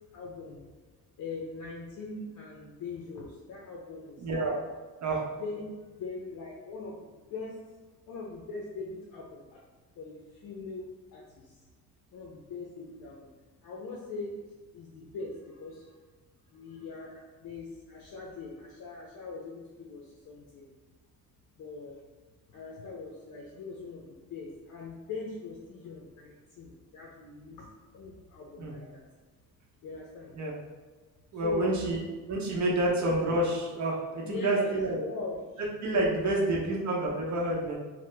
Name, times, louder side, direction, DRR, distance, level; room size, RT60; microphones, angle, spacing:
voice 1, 0.1-0.7 1.2-4.5 5.4-7.0 7.3-7.6 8.1-9.6 10.0-11.2 12.1-13.3 13.6-14.3 14.7-15.8 16.5-20.7 21.6-21.9 22.5-27.7 27.9-29.0 29.8-30.3 31.4-31.8 34.2-35.4 36.2-36.7, left 3 dB, 60° left, -3 dB, 0.6 m, -41 dB
voice 2, 4.2-4.6 5.0-5.2 28.6-28.7 30.3-30.5 31.3-35.0 35.6-37.8, right 1 dB, 50° right, -2 dB, 0.7 m, -29 dB
2.8 x 2.1 x 3.3 m, 1.3 s
cardioid pair, 100°, 36 cm